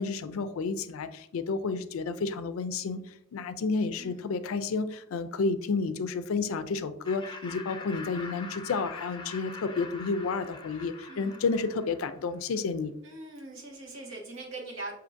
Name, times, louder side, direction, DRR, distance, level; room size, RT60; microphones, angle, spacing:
voice 1, 0.0-12.9, left 4 dB, 90° left, 12 dB, 0.4 m, -31 dB
voice 2, 4.0-4.3 11.1-11.4 13.0-14.9, right 2 dB, 70° right, -1 dB, 1.2 m, -42 dB
Laughter, 7.1-12.3, left 3 dB, 25° left, 0.5 m, -44 dB
6.2 x 2.8 x 2.5 m, 0.75 s
head